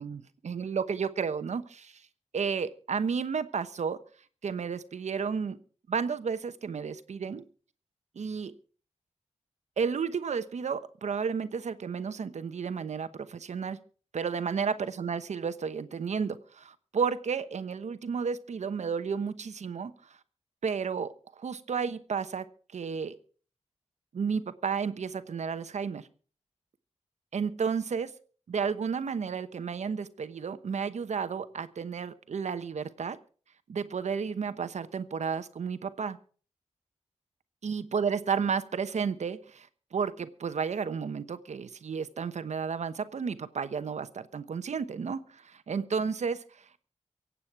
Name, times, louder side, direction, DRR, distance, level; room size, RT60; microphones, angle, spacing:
voice 1, 0.0-2.0 2.3-4.0 4.4-5.6 5.9-7.4 8.2-8.5 9.8-13.8 14.1-19.9 20.6-21.1 21.4-22.4 22.7-23.2 24.1-26.1 27.3-28.1 28.5-33.2 33.7-36.2 37.6-39.7 39.9-46.4, right 6 dB, 80° right, 12 dB, 1.0 m, -32 dB
24.0 x 8.5 x 4.7 m, 0.42 s
wide cardioid pair, 135°, 12 cm